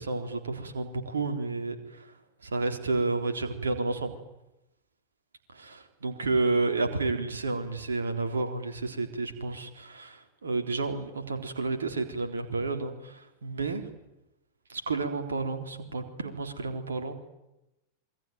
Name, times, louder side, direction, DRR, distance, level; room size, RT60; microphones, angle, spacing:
voice 1, 0.0-2.1 2.4-4.2 5.5-13.8 14.7-17.1, right 3 dB, 70° right, 6 dB, 3.7 m, -31 dB
27.5 x 23.0 x 9.4 m, 0.92 s
figure-of-eight pair, 90°, 0 cm